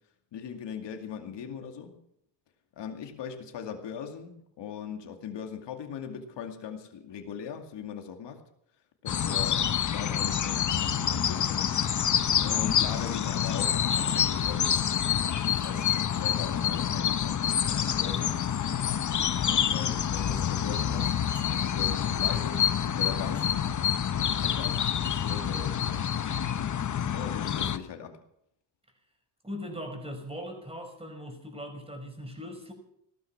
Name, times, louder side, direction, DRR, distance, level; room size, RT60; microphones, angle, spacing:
voice 1, 0.3-2.0 2.8-8.4 9.0-11.7 12.4-14.8 15.5-18.4 19.4-21.1 21.5-23.5 24.1-26.1 27.1-28.2, left 7 dB, 75° left, 4 dB, 2.4 m, -40 dB
sound 1, 9.1-27.8, left 9 dB, 45° left, 0.9 m, -27 dB
sound 2, 9.4-23.5, right 5 dB, 90° right, 7.1 m, -49 dB
sound 3, 11.3-11.9 14.1-14.2 15.6-15.8 17.3-17.4 18.7-19.0 19.8-19.9 20.2-20.3 21.4-22.0 22.3-22.7 23.4-23.7 24.8-25.0, left 1 dB, 20° left, 5.0 m, -52 dB
voice 2, 29.4-32.7, equal, 15° right, 4 dB, 5.7 m, -39 dB
17.5 x 13.0 x 6.0 m, 0.74 s
cardioid pair, 85°, 43 cm